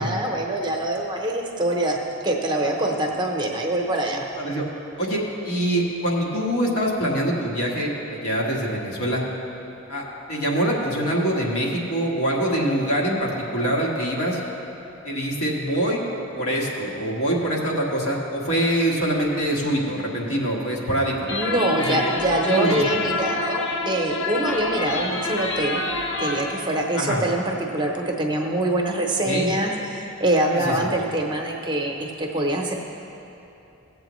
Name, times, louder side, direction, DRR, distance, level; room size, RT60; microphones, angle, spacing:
voice 1, 0.0-4.2 21.3-25.8 26.1-32.7, right 1 dB, 20° right, 1 dB, 0.7 m, -24 dB
voice 2, 5.0-9.2 9.9-14.4 15.0-16.0 16.3-21.3 21.8-22.0 22.5-22.8 27.0-27.2 29.2-29.5 30.5-30.9, right 1 dB, 80° left, -3 dB, 1.5 m, -24 dB
sound 1, 21.3-26.6, left 2 dB, 60° left, 0.7 m, -27 dB
16.5 x 7.7 x 3.1 m, 2.9 s
head